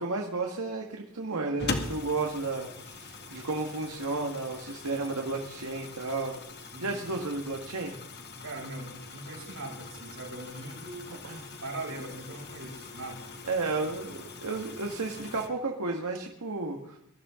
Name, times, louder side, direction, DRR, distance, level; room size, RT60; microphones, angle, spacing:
voice 1, 0.0-6.4 6.8-7.9 11.2-11.5 13.5-17.0, right 3 dB, 90° right, 1 dB, 1.7 m, -33 dB
sound 1, 1.6-15.5, left 3 dB, 50° left, 1.9 m, -42 dB
voice 2, 6.7-7.1 8.4-11.1 11.6-13.3, right 2 dB, 70° right, 0 dB, 6.1 m, -41 dB
23.0 x 13.5 x 3.8 m, 0.78 s
head